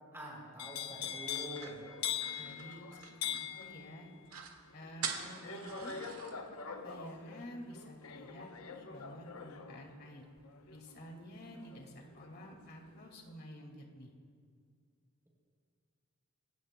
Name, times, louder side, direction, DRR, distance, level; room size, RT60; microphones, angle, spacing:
voice 1, 0.1-1.8, right 1 dB, 10° right, -3 dB, 3.4 m, -46 dB
sound 1, 0.6-12.5 12.9-13.3, left 8 dB, 75° left, 0.8 m, -43 dB
sound 2, 1.3-3.7 4.0-4.1 4.3-4.6 5.0-6.3, right 6 dB, 90° right, 1.9 m, -44 dB
voice 2, 2.4-4.1 4.7-6.0 6.3-10.2 10.7-14.1, equal, 50° left, 1 dB, 2.2 m, -50 dB
26.5 x 16.0 x 2.2 m, 2.1 s
head